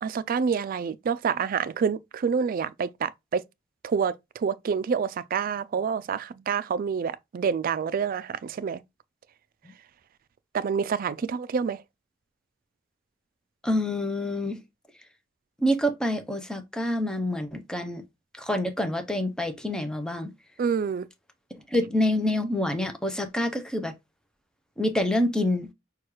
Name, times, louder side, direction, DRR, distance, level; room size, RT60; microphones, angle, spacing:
voice 1, 0.0-3.4 3.8-8.8 10.5-11.8 20.6-21.1, right 6 dB, 50° right, 0.3 m, -27 dB
voice 2, 13.6-14.6 15.6-18.0 18.4-20.3 21.7-23.9 24.8-25.7, left 1 dB, 5° left, 0.6 m, -27 dB
6.3 x 2.3 x 3.0 m
head